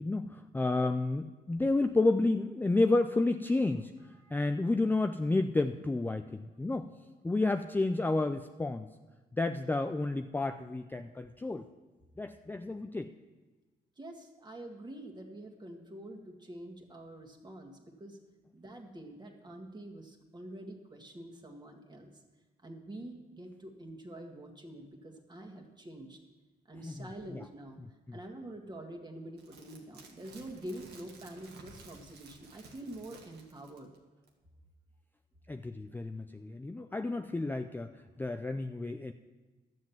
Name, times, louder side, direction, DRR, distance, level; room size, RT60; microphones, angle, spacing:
voice 1, 0.0-3.9 4.3-6.9 7.2-8.9 9.4-11.7 12.2-13.1 26.8-27.1 27.3-27.4 28.1-28.2 35.5-39.1, left 2 dB, 10° left, 8 dB, 0.4 m, -31 dB
voice 2, 4.0-4.4 14.0-18.2 18.5-22.1 22.6-26.2 26.7-27.8 28.1-33.9, right 1 dB, 25° right, 2 dB, 1.9 m, -46 dB
sound 1, 29.4-34.0 34.3-34.4, right 4 dB, 90° right, 1.7 m, -54 dB
12.0 x 7.6 x 7.2 m, 1.2 s
cardioid pair, 95°, 17 cm